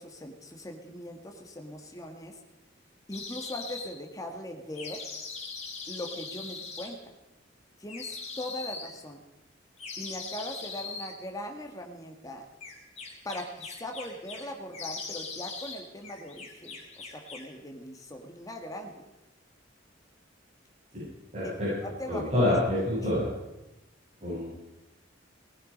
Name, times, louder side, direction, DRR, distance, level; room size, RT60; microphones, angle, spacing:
voice 1, 0.0-2.3 3.1-5.0 5.9-7.1 7.8-9.2 10.0-12.5 13.2-19.0 21.4-22.9, left 1 dB, 20° left, 2 dB, 1.6 m, -40 dB
sound 1, 3.1-3.9 4.8-6.9 7.9-8.9 9.8-11.1 12.6-14.5 14.7-15.8 16.0-17.5, left 4 dB, 35° left, 3.5 m, -40 dB
voice 2, 21.3-21.7 22.1-23.3 24.2-24.5, left 1 dB, 40° right, -10 dB, 7.9 m, -27 dB
18.5 x 15.0 x 5.2 m, 0.98 s
head